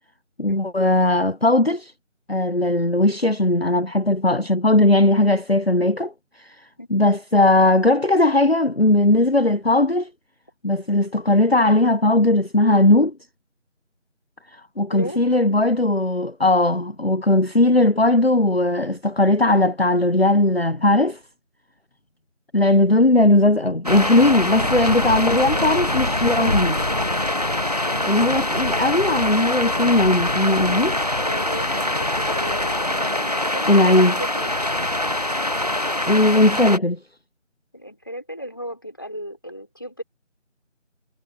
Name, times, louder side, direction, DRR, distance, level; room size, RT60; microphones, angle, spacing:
voice 1, 0.4-1.9 2.3-10.1 10.6-13.1 14.5-21.2 22.5-26.8 28.1-31.0 33.7-34.1 36.0-37.0, left 2 dB, 55° left, 0.9 m, -18 dB
sound 1, 23.9-36.8, left 1 dB, 30° right, 1.6 m, -23 dB
voice 2, 31.2-34.6 37.7-40.0, equal, 15° left, 5.2 m, -35 dB
figure-of-eight pair, 175°, 37 cm